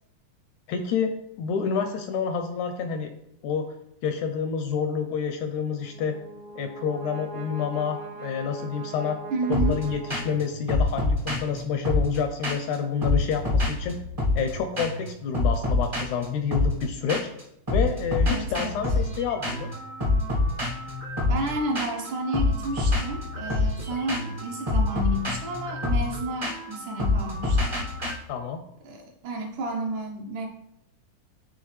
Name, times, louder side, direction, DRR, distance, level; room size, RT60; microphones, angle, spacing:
voice 1, 0.7-3.1 3.4-3.7 4.0-6.2 6.5-9.2 9.5-14.0 14.3-17.2 17.7-19.7 28.3-28.6, left 6 dB, 85° left, 7 dB, 1.7 m, -28 dB
Brass instrument, 5.7-10.8, right 3 dB, 90° right, 2.9 m, -40 dB
voice 2, 9.3-9.8 18.3-18.9 21.3-27.8 28.8-30.5, right 1 dB, 75° right, 1 dB, 2.1 m, -31 dB
sound 1, 9.5-9.8 10.1-10.4 10.7-12.7 13.0-14.5 14.8-15.1 15.3-17.4 17.7-28.1, left 2 dB, 40° right, 0.5 m, -26 dB
10.5 x 3.8 x 3.2 m, 0.78 s
omnidirectional pair, 3.8 m